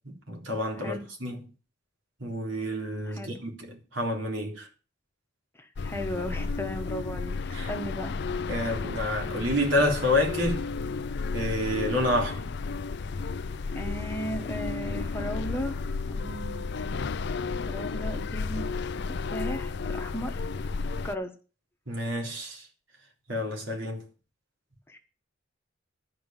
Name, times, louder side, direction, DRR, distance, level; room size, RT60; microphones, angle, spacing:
voice 1, 0.3-1.4 2.2-4.7 7.5-7.7 8.5-10.6 11.3-12.5 21.9-22.7 23.3-24.0, left 1 dB, 70° right, 3.7 m, -28 dB
voice 2, 0.8-1.1 3.1-3.4 5.5-7.4 7.7-8.2 13.7-15.8 16.1-18.7 18.9-20.4 21.0-21.3 24.9-25.0, equal, 10° left, 1.1 m, -36 dB
sound 1, 5.8-21.2, left 4 dB, 60° left, 0.5 m, -33 dB
12.5 x 5.1 x 8.9 m
head